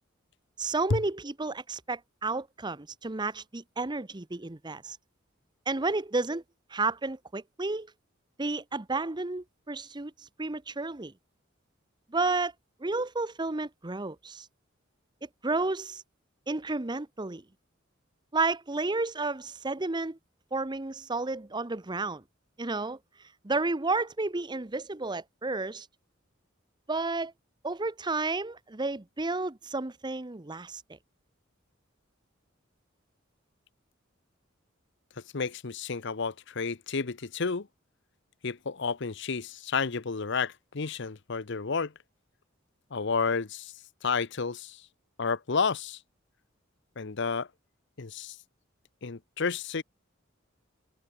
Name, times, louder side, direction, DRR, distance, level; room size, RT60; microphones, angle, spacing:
voice 1, 0.6-5.0 5.7-6.4 6.7-7.9 8.4-10.1 10.4-11.1 12.1-12.5 12.8-14.5 15.4-16.0 16.5-17.4 18.3-20.2 20.5-22.2 22.6-23.0 23.4-25.9 26.9-27.3 27.6-30.8, right 3 dB, 20° right, 0.9 m, -31 dB
voice 2, 35.3-37.7 38.4-41.9 42.9-43.7 44.0-44.8 45.2-46.0 47.0-47.5 48.0-48.4 49.0-49.8, left 5 dB, 65° left, 0.9 m, -31 dB
head